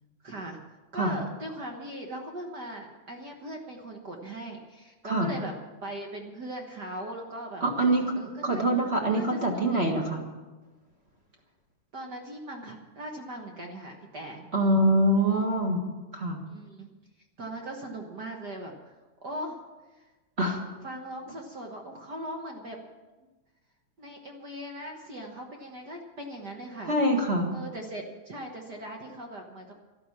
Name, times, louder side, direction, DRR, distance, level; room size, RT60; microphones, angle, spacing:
voice 1, 0.2-0.6 0.9-5.5 5.8-7.6 8.2-8.6 9.1-9.9 11.9-14.5 16.5-16.9 17.4-19.6 20.8-22.8 24.0-26.9 27.5-29.7, right 1 dB, 55° right, 1 dB, 1.2 m, -39 dB
voice 2, 7.6-8.1 8.4-10.2 14.5-15.8 16.1-16.4 20.4-20.6 26.9-27.5, right 1 dB, 25° right, 1 dB, 1.4 m, -24 dB
13.0 x 12.5 x 7.3 m, 1.2 s
omnidirectional pair, 3.7 m